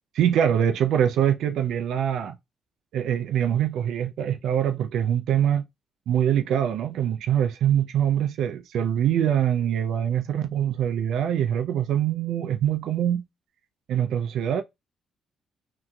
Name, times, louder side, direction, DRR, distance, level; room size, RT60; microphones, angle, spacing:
voice 1, 0.1-2.4 2.9-5.6 6.1-13.2 13.9-14.6, right 9 dB, 75° right, 0.4 m, -24 dB
2.8 x 2.5 x 2.2 m
cardioid pair, 90°, 0 cm